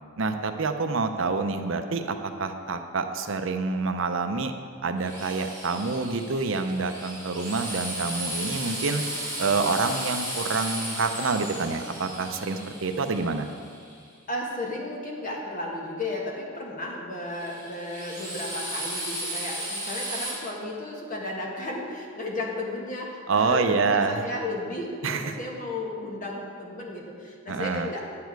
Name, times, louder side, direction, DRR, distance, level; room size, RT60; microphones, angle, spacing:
voice 1, 0.2-4.5 4.8-9.0 9.4-13.5 23.3-24.2 25.0-25.3 27.5-27.9, right 4 dB, 65° right, 7 dB, 0.6 m, -27 dB
Drill, 5.0-13.9 17.3-20.3, right 1 dB, 15° left, 3.0 m, -35 dB
voice 2, 14.3-28.0, left 2 dB, 40° left, -2 dB, 1.6 m, -34 dB
10.5 x 8.6 x 4.7 m, 2.2 s
head